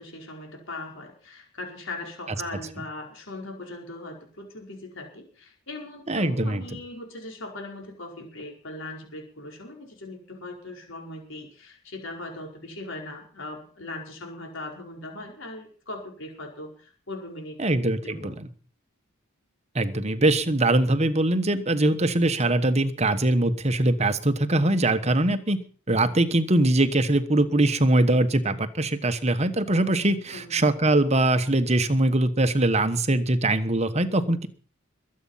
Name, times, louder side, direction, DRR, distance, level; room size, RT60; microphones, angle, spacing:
voice 1, 0.0-17.6 18.0-18.4 30.3-30.7, left 2 dB, 60° left, 1 dB, 5.0 m, -39 dB
voice 2, 6.1-6.6 17.6-18.3 19.7-25.6 25.9-34.5, right 1 dB, 30° right, 10 dB, 1.2 m, -22 dB
22.0 x 8.7 x 5.7 m, 0.42 s
head